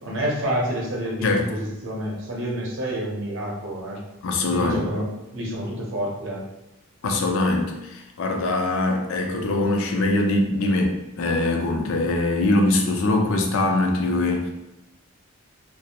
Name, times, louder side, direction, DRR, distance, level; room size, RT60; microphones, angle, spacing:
voice 1, 0.0-4.0 4.5-6.4, equal, 60° right, -3 dB, 0.7 m, -28 dB
voice 2, 4.2-4.9 7.0-14.5, left 2 dB, 70° left, 2 dB, 0.4 m, -22 dB
2.4 x 2.0 x 2.8 m, 0.94 s
head